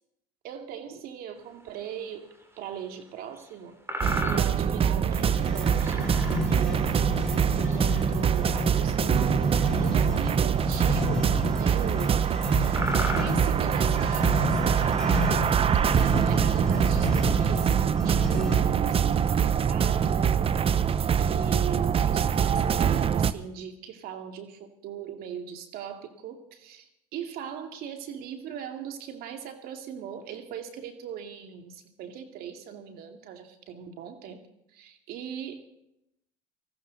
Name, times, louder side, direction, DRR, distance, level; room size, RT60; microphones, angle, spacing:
voice 1, 0.4-2.3 2.6-3.8 4.1-6.0 6.5-9.5 9.7-12.2 12.5-15.2 15.9-20.8 21.2-35.6, right 8 dB, 65° right, 5 dB, 2.3 m, -39 dB
sound 1, 1.7-1.8 2.4-2.5 3.3-3.5 3.9-4.8 5.1-5.3 5.8-6.8 7.4-7.8 8.5-8.8 10.1-10.2 10.8-10.9 11.7-11.8 12.3-12.4 12.7-14.2, equal, 15° right, 3.3 m, -35 dB
sound 2, 4.0-23.3, right 8 dB, 35° right, 0.7 m, -24 dB
sound 3, 5.1-18.8, left 1 dB, 5° left, 4.3 m, -32 dB
19.5 x 14.5 x 4.0 m, 0.80 s
supercardioid pair, 85°, 17 cm